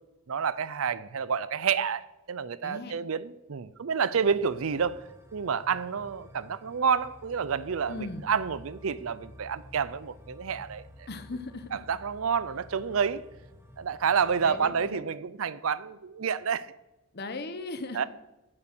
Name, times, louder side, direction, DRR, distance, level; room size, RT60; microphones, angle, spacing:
voice 1, 0.3-5.0 5.3-11.1 11.7-13.2 13.8-16.7 17.9-18.1, right 6 dB, 70° right, 0.5 m, -29 dB
voice 2, 2.6-3.0 7.9-8.3 11.1-11.7 14.4-15.0 17.1-18.0, left 2 dB, 50° left, 1.0 m, -38 dB
sound 1, 4.1-15.0, equal, 10° right, 1.3 m, -51 dB
10.0 x 7.8 x 6.0 m
head